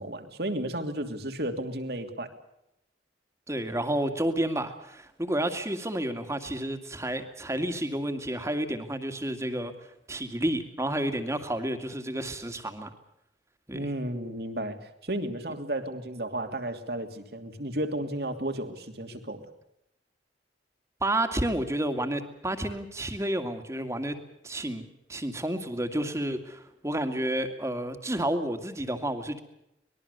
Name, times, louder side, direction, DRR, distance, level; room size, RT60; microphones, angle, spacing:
voice 1, 0.0-2.3 13.7-19.4, right 1 dB, 60° right, 6 dB, 3.0 m, -33 dB
voice 2, 3.5-9.7 10.1-12.9 13.7-13.9 21.0-24.2 24.4-29.4, right 1 dB, 15° right, 8 dB, 2.3 m, -30 dB
25.0 x 21.0 x 6.9 m, 0.82 s
head